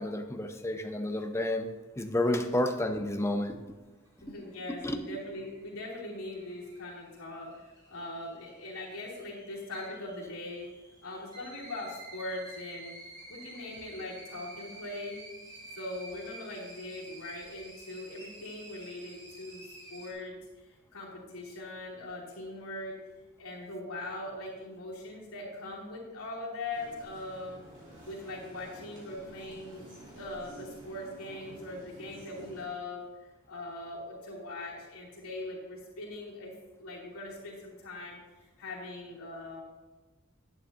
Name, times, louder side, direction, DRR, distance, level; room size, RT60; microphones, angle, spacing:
voice 1, 0.0-1.7 2.0-3.6 4.7-5.0, left 1 dB, 10° left, 6 dB, 0.6 m, -30 dB
sound 1, 3.8-20.1, right 2 dB, 20° right, 2.3 m, -51 dB
voice 2, 4.2-7.5 7.9-10.7 11.0-12.9 13.3-15.2 15.8-22.9 23.4-27.6 28.1-29.9 30.1-33.0 33.5-36.5 36.8-38.2 38.6-39.6, left 2 dB, 80° left, -5 dB, 2.9 m, -41 dB
sound 2, 26.7-32.6, right 1 dB, 35° right, 2.8 m, -50 dB
10.5 x 9.2 x 2.8 m, 1.2 s
head